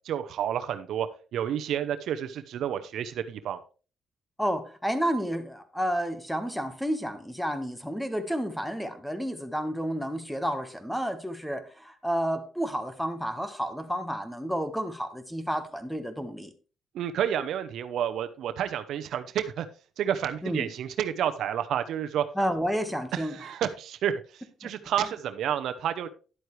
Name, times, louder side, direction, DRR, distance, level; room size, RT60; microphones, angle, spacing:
voice 1, 0.0-1.1 1.3-3.6 16.9-19.7 20.0-22.2 23.1-26.1, right 9 dB, 75° right, 10 dB, 0.8 m, -30 dB
voice 2, 4.4-16.5 20.4-20.7 22.3-23.3, equal, 5° left, 9 dB, 1.4 m, -31 dB
11.0 x 7.8 x 3.2 m, 0.35 s
cardioid pair, 90°, 0 cm